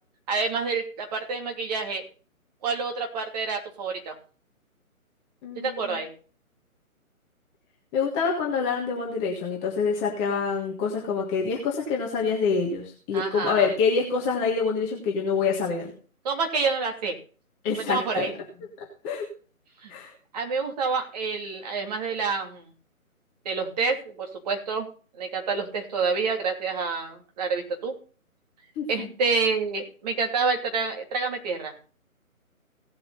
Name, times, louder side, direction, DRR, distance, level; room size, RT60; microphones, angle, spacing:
voice 1, 0.3-2.0 2.6-4.1 5.5-6.1 13.1-13.7 16.2-17.2 17.7-18.3 19.8-19.9 20.3-22.7 23.4-24.9 25.1-27.9 28.9-31.7, right 4 dB, 30° right, 3 dB, 3.0 m, -28 dB
voice 2, 5.4-6.0 7.9-15.9 17.6-18.3 18.8-19.3 19.9-20.1 28.8-29.1, left 5 dB, 10° left, -1 dB, 1.5 m, -26 dB
17.5 x 7.8 x 4.1 m, 0.38 s
figure-of-eight pair, 145°, 43 cm